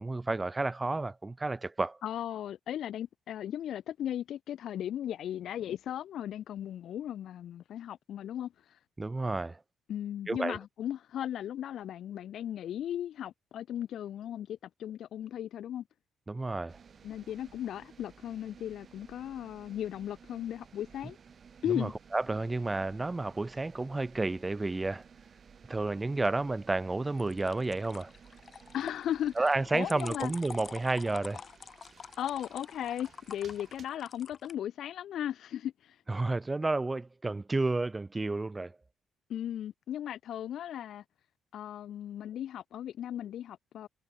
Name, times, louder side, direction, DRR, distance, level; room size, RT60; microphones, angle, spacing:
voice 1, 0.0-2.0 9.0-9.6 10.3-10.6 16.3-16.8 21.7-25.0 25.7-28.1 29.4-31.4 36.1-38.8, right 2 dB, 20° right, 4.2 m, -31 dB
voice 2, 2.0-8.5 9.9-15.8 17.0-21.2 21.6-21.9 28.7-29.3 29.7-30.3 32.2-36.0 39.3-41.0 41.5-43.9, left 10 dB, 70° left, 1.8 m, -36 dB
sound 1, 16.7-33.9, right 6 dB, 45° right, 7.8 m, -56 dB
sound 2, 16.9-17.6 27.2-34.6, left 6 dB, 45° left, 4.5 m, -48 dB
cardioid pair, 90°, 0 cm